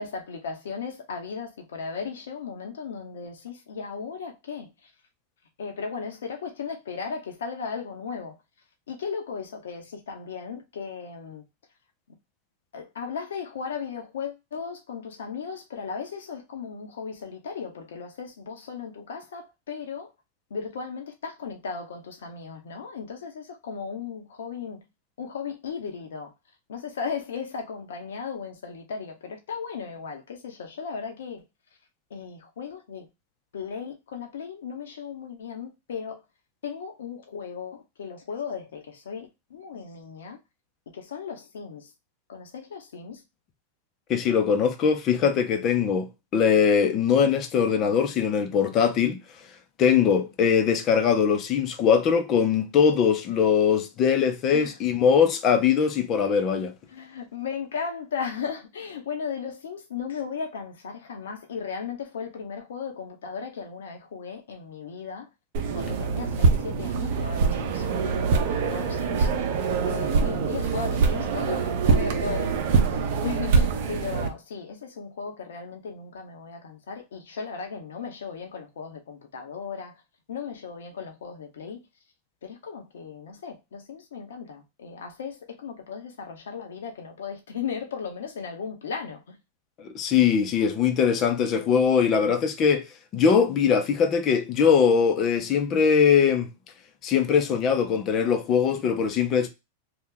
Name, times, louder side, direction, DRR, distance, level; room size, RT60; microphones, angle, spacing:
voice 1, 0.0-4.9 5.6-8.4 8.9-11.4 12.7-20.1 20.5-24.8 25.2-26.3 26.7-31.4 32.1-33.1 33.5-36.2 36.6-40.4 40.9-41.9 42.3-43.2 54.5-54.8 56.9-65.3 65.7-69.5 69.9-72.6 73.2-80.0 80.3-81.8 82.4-89.4, left 6 dB, 80° left, 0.9 m, -36 dB
voice 2, 44.1-49.2 49.8-56.7 89.8-92.9 93.1-96.5 97.0-99.5, left 7 dB, 40° left, 0.7 m, -21 dB
sound 1, 65.5-74.3, right 5 dB, 60° right, 0.7 m, -24 dB
2.9 x 2.4 x 3.7 m
hypercardioid pair, 115°, 0 cm